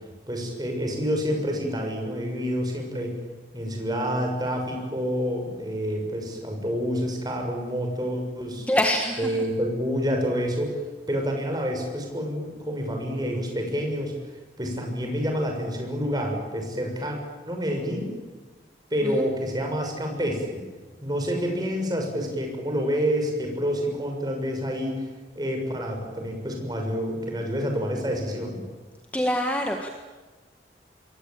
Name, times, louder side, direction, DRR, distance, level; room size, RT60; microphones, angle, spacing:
voice 1, 0.3-3.1 3.5-8.6 9.2-10.7 11.1-17.2 17.4-18.1 18.9-20.6 21.0-25.1 25.3-28.6, equal, 20° right, 2 dB, 6.5 m, -28 dB
voice 2, 8.7-9.3 19.0-19.2 29.1-29.9, left 1 dB, 10° left, 3 dB, 1.7 m, -25 dB
27.5 x 22.5 x 9.0 m, 1.3 s
head